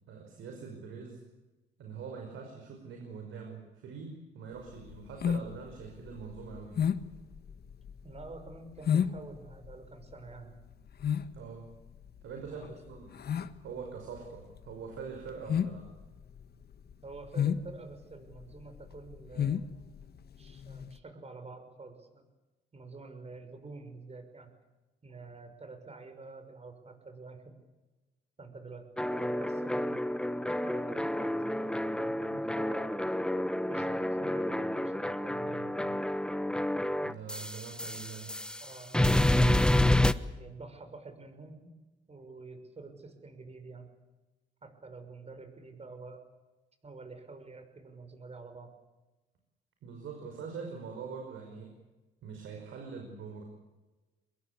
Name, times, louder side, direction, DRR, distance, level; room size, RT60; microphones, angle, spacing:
voice 1, 0.1-1.2 1.8-6.8 11.3-11.7 12.2-13.1 13.6-15.9 37.0-38.3 49.8-51.8 52.2-53.4, right 5 dB, 80° right, 2 dB, 5.7 m, -43 dB
sound 1, 4.6-20.9, left 8 dB, 55° left, 1.4 m, -33 dB
voice 2, 8.0-10.6 12.5-12.8 17.0-19.6 20.4-22.3 22.7-24.5 25.0-27.6 28.4-30.0 30.6-33.0 33.7-36.0 38.6-39.7 40.4-41.7 42.1-43.9 44.6-46.2 46.8-48.7, right 3 dB, 30° right, 7 dB, 6.1 m, -48 dB
sound 2, 29.0-38.7 38.9-40.1, left 1 dB, 5° left, 1.1 m, -29 dB
24.5 x 21.5 x 8.4 m, 1.1 s
cardioid pair, 90°, 20 cm